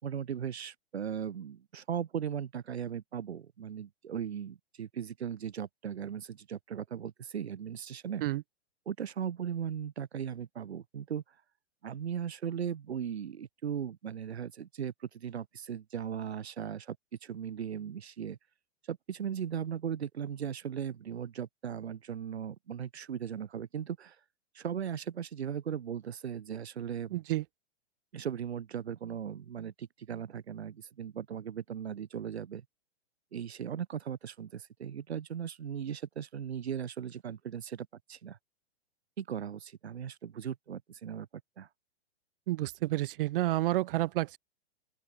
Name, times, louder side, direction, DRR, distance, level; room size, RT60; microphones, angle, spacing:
voice 1, 0.0-8.2 8.9-11.4 11.8-18.4 18.8-24.2 24.5-27.2 28.1-32.6 33.3-38.4 39.2-41.7, right 8 dB, 75° right, 5.3 m, -38 dB
voice 2, 27.1-27.4 42.5-44.4, right 16 dB, 55° right, 7.5 m, -30 dB
open air
hypercardioid pair, 115°, 32 cm